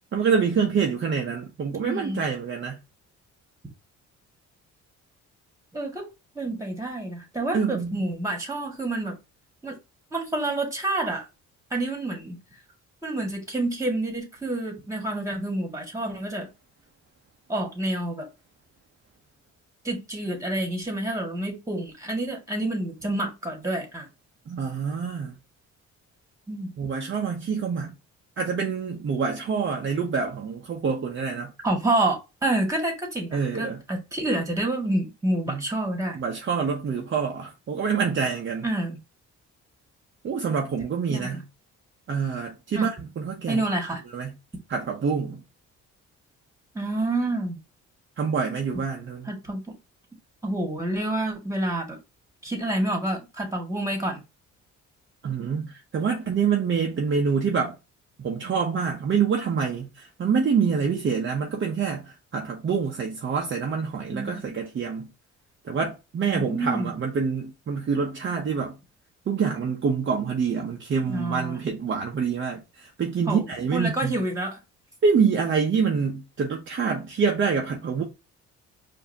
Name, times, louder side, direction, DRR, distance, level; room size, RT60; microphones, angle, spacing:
voice 1, 0.1-2.8 7.5-8.0 24.5-25.4 26.8-27.9 28.4-31.5 33.3-33.8 35.5-35.6 36.1-38.7 40.2-41.4 42.1-43.6 44.1-44.3 44.7-45.4 48.2-49.3 55.2-57.7 58.2-65.1 65.6-68.8 69.3-74.1 75.0-78.0, right 6 dB, 40° right, 0.8 m, -26 dB
voice 2, 1.8-2.2 5.7-6.1 6.4-9.2 9.6-9.8 10.1-11.3 11.7-12.4 13.0-16.5 17.5-18.3 19.8-24.1 26.5-26.7 31.6-36.2 38.6-39.0 41.1-41.4 42.7-42.9 43.5-44.0 46.7-47.6 49.3-49.8 50.4-52.0 52.4-54.2 64.1-64.5 66.3-66.9 71.0-71.6 73.3-74.6, right 1 dB, 10° right, 1.8 m, -28 dB
4.7 x 2.8 x 2.7 m
cardioid pair, 90°, 30 cm